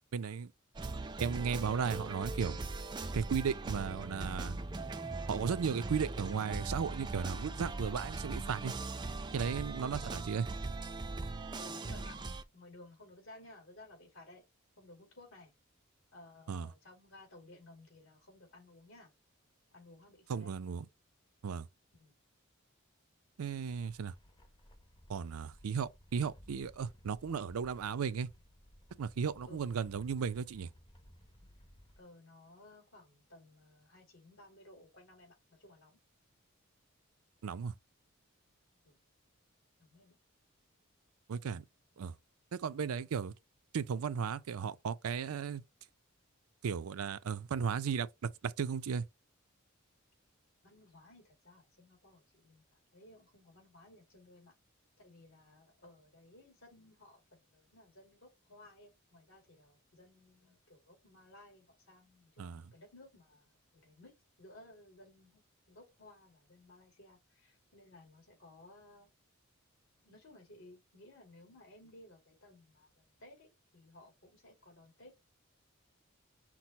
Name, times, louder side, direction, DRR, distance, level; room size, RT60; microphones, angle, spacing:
voice 1, 0.1-0.5 1.2-2.6 3.1-4.6 5.3-8.7 9.3-10.5 16.5-16.7 20.3-20.9 21.4-21.7 23.4-24.1 25.1-28.3 29.0-30.7 37.4-37.7 41.3-41.6 42.0-42.1 42.5-43.3 43.7-45.6 46.6-49.0 62.4-62.6, right 6 dB, 85° right, 0.4 m, -35 dB
sound 1, 0.7-12.4, right 3 dB, 20° right, 0.4 m, -40 dB
voice 2, 9.8-10.5 11.6-12.2 12.5-14.4 14.8-15.5 16.1-19.1 19.7-20.5 21.9-22.1 29.5-29.6 32.0-36.0 38.8-39.0 39.8-40.2 50.6-54.5 55.0-64.1 64.4-69.1 70.0-75.2, left 2 dB, 65° left, 2.4 m, -58 dB
sound 2, 23.6-32.0, equal, 20° left, 0.6 m, -59 dB
6.0 x 2.0 x 4.0 m
head